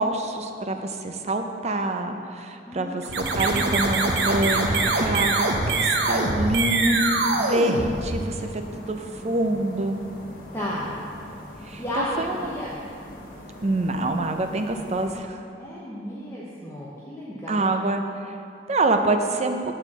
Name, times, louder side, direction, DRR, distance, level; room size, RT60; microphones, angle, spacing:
voice 1, 0.0-10.0 11.6-12.5 13.6-15.4 17.5-18.0 18.3-18.4 18.7-19.6, right 2 dB, 40° right, 6 dB, 0.6 m, -26 dB
voice 2, 2.7-3.7 4.8-5.2 10.5-11.0 11.8-12.8 15.6-17.7, equal, 15° left, -7 dB, 0.9 m, -33 dB
sound 1, 3.0-8.5, right 3 dB, 75° right, 0.9 m, -24 dB
sound 2, 5.3-15.2, left 1 dB, 55° left, 1.3 m, -42 dB
8.9 x 4.4 x 7.3 m, 2.5 s
head